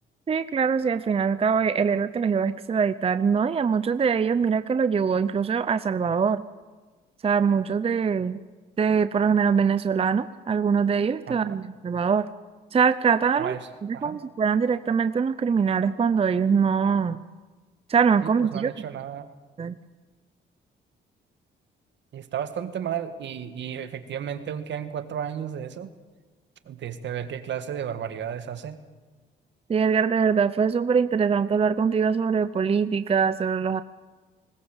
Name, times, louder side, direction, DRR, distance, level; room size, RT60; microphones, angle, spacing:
voice 1, 0.3-6.4 7.2-8.4 8.8-12.3 12.7-13.6 13.8-17.2 17.9-18.7 19.6-19.8 29.7-33.8, right 6 dB, 30° right, 13 dB, 0.6 m, -23 dB
voice 2, 11.3-11.6 13.4-13.6 13.9-14.2 18.2-19.3 22.1-25.9 26.7-28.8, right 9 dB, 65° right, 10 dB, 1.7 m, -33 dB
20.0 x 19.5 x 7.3 m, 1.3 s
cardioid pair, 90°, 20 cm